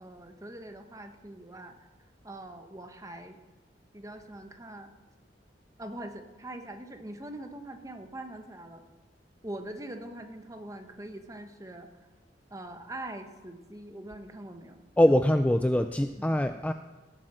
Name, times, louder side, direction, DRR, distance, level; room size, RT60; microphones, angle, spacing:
voice 1, 0.0-1.9 2.2-3.4 3.9-4.9 5.8-8.8 9.4-11.9 12.5-14.8 16.2-16.4, right 1 dB, 20° right, 6 dB, 1.2 m, -43 dB
voice 2, 15.0-16.7, left 1 dB, 10° left, 8 dB, 0.3 m, -23 dB
18.0 x 8.8 x 6.2 m, 1.2 s
head